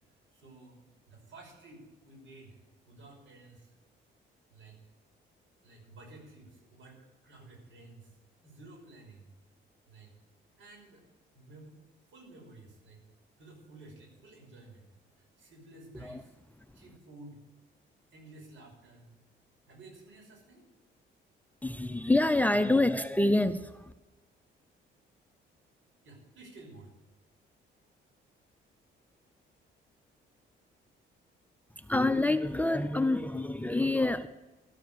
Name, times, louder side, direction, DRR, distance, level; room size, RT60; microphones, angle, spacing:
voice 1, 0.3-2.6 2.9-3.7 4.5-4.8 5.6-8.1 8.4-9.3 9.9-10.1 10.6-11.1 11.3-11.7 12.1-13.0 13.4-14.9 15.1-16.4 16.7-17.4 18.1-19.1 19.7-20.7 26.0-26.9, right 2 dB, 75° right, 0 dB, 5.6 m, -53 dB
voice 2, 21.6-23.9 31.8-34.3, left 2 dB, 10° left, 12 dB, 0.6 m, -27 dB
13.0 x 7.1 x 7.8 m, 1.1 s
cardioid pair, 90°, 20 cm